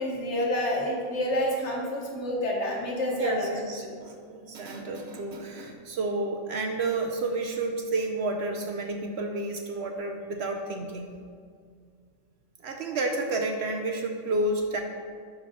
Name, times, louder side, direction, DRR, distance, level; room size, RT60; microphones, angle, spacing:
voice 1, 0.0-3.5, left 1 dB, 60° left, -2 dB, 1.5 m, -28 dB
voice 2, 3.1-11.1 12.6-14.8, right 2 dB, 60° right, 3 dB, 0.8 m, -30 dB
6.2 x 5.1 x 5.4 m, 2.1 s
omnidirectional pair, 1.4 m